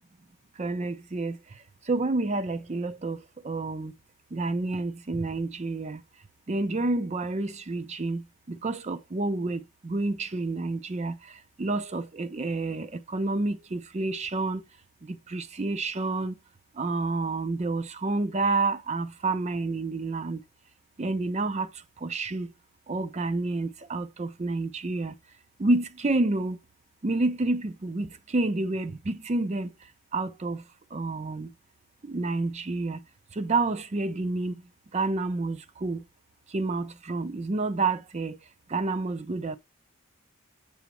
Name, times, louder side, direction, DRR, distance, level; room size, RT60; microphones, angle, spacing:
voice 1, 0.6-1.4 1.9-3.9 4.3-6.0 6.5-14.6 15.0-16.3 16.8-20.4 21.0-21.7 22.0-22.5 22.9-25.1 25.6-26.6 27.0-29.7 30.1-30.6 30.9-31.5 32.0-33.0 33.3-34.6 34.9-36.0 36.5-38.4 38.7-39.6, right 3 dB, 30° right, 0.5 m, -29 dB
7.0 x 6.0 x 3.0 m
head